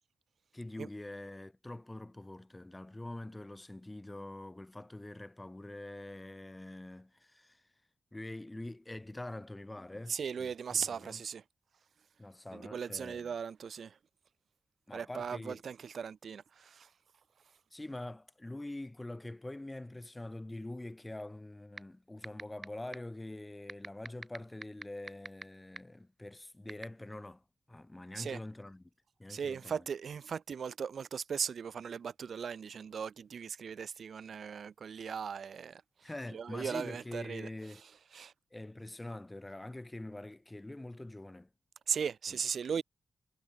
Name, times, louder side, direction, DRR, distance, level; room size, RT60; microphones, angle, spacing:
voice 1, 0.5-7.6 8.1-11.2 12.2-13.3 14.9-15.6 17.7-27.4 27.7-28.8 29.2-29.8 36.0-37.8 38.5-41.5 42.3-42.4, left 1 dB, 15° left, 4.6 m, -45 dB
voice 2, 10.1-11.4 12.5-14.0 14.9-16.9 28.2-28.4 29.3-35.8 36.3-37.5 38.1-38.3 41.9-42.8, right 7 dB, 65° right, 4.2 m, -38 dB
sound 1, 21.8-21.9 22.2-22.6 22.9-23.0 23.7-25.4 25.8-25.9 26.7-26.8, right 4 dB, 35° right, 4.6 m, -39 dB
wide cardioid pair, 130°, 0 cm